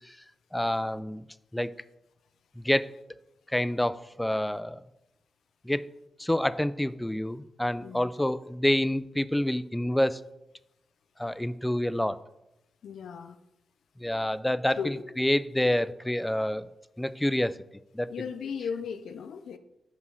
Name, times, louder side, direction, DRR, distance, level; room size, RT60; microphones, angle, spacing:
voice 1, 0.5-1.2 1.5-1.7 2.6-2.9 3.5-4.8 5.6-5.9 6.2-10.2 11.2-12.2 14.0-14.8 15.2-16.7 17.0-17.6 17.9-18.1, left 1 dB, 10° left, 16 dB, 0.4 m, -27 dB
voice 2, 12.8-13.4 14.8-15.0 18.1-19.6, left 6 dB, 85° left, 11 dB, 0.4 m, -36 dB
5.4 x 4.9 x 6.3 m, 0.90 s
cardioid pair, 65°, 0 cm